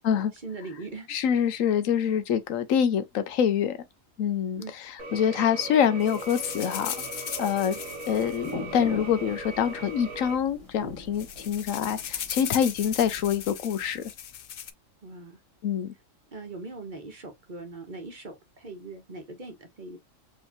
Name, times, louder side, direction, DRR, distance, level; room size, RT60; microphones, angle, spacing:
voice 1, 0.3-1.1 4.6-4.7 15.0-15.4 16.3-20.0, right 3 dB, 40° right, 1.2 m, -40 dB
voice 2, 1.1-3.8 4.2-4.6 5.1-6.9 7.4-7.8 8.0-14.0 15.6-15.9, left 8 dB, 80° left, 1.0 m, -25 dB
sound 1, 5.0-10.4, right 2 dB, 80° right, 1.4 m, -39 dB
sound 2, 6.0-9.2 10.0-10.1 10.4-10.6 10.9-14.7, left 9 dB, 60° left, 0.6 m, -38 dB
sound 3, 8.1-13.5, left 3 dB, 25° left, 1.2 m, -41 dB
4.7 x 3.2 x 2.7 m
omnidirectional pair, 1.4 m